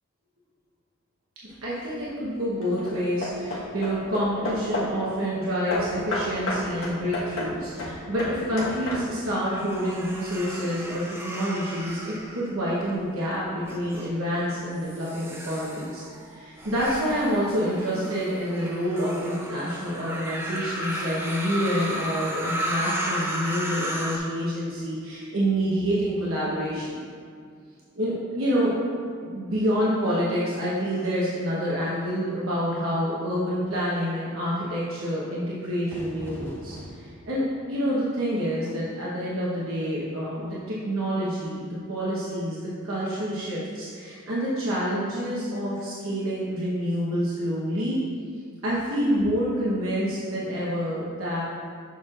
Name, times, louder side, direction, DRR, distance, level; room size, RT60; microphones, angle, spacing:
Hammer / Wood, 1.5-2.0 2.6-5.1 5.7-9.4, left 1 dB, 70° left, 1.3 m, -32 dB
voice 1, 1.6-16.0 16.3-27.0 27.9-28.7 29.2-48.0 48.6-51.4, equal, 75° right, -7 dB, 1.1 m, -27 dB
sound 1, 9.5-13.0 13.6-14.1 14.8-24.2, right 1 dB, 10° right, 0.6 m, -34 dB
Fire / Fireworks, 35.9-41.4, equal, 10° left, 0.9 m, -46 dB
7.0 x 6.3 x 2.5 m, 2.1 s
head